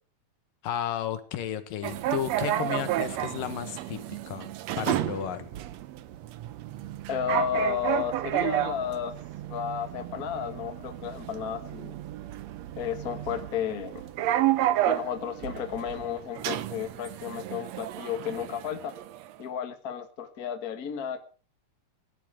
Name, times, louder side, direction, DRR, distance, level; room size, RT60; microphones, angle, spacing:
voice 1, 0.6-4.5 4.8-5.5, left 10 dB, 90° left, 11 dB, 3.1 m, -33 dB
sound 1, 1.8-19.3, right 13 dB, 70° right, 1.7 m, -32 dB
voice 2, 7.1-9.1 9.5-11.9 12.7-14.1 14.8-18.9 19.4-21.2, left 8 dB, 40° left, 7 dB, 1.5 m, -32 dB
18.0 x 11.5 x 5.0 m, 0.39 s
omnidirectional pair, 3.8 m